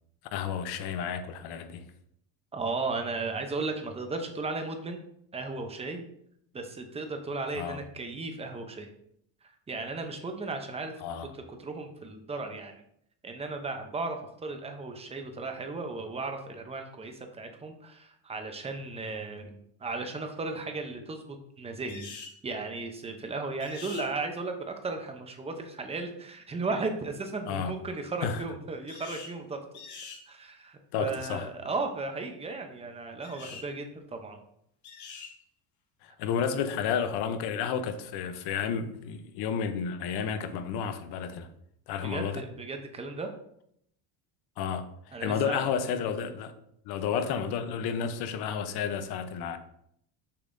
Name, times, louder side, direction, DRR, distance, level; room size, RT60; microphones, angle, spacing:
voice 1, 0.3-1.8 7.6-7.8 11.0-11.3 27.5-27.7 28.2-28.4 30.9-31.5 36.0-41.5 41.9-42.4 44.6-46.5 46.9-49.6, left 7 dB, 60° left, 0.8 m, -31 dB
voice 2, 2.5-5.0 5.3-6.0 6.5-8.9 9.4-10.9 11.3-12.8 13.2-22.1 22.4-29.6 30.3-34.4 42.0-43.3 45.1-45.7, right 3 dB, 15° right, 0.6 m, -35 dB
sound 1, 21.9-22.4 23.6-24.1 28.9-29.4 29.7-30.2 33.2-33.7 34.8-35.3, left 5 dB, 40° left, 1.2 m, -44 dB
6.8 x 5.4 x 2.6 m
cardioid pair, 140°, 43 cm